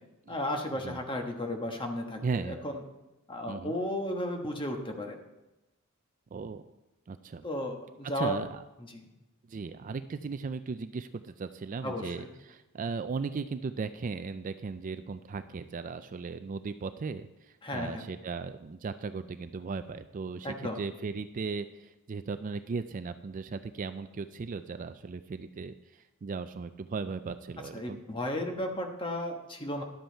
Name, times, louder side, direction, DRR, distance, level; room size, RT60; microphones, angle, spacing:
voice 1, 0.3-2.8 3.3-5.2 7.4-8.4 8.8-9.1 11.8-12.3 17.6-18.1 20.4-20.8 27.7-29.8, left 1 dB, 25° left, 3 dB, 1.2 m, -34 dB
voice 2, 2.2-2.6 3.5-3.7 6.3-6.6 7.1-7.5 8.2-8.6 9.5-17.3 17.7-28.0, right 4 dB, 35° right, 11 dB, 0.4 m, -37 dB
11.5 x 7.8 x 4.5 m, 1.0 s
head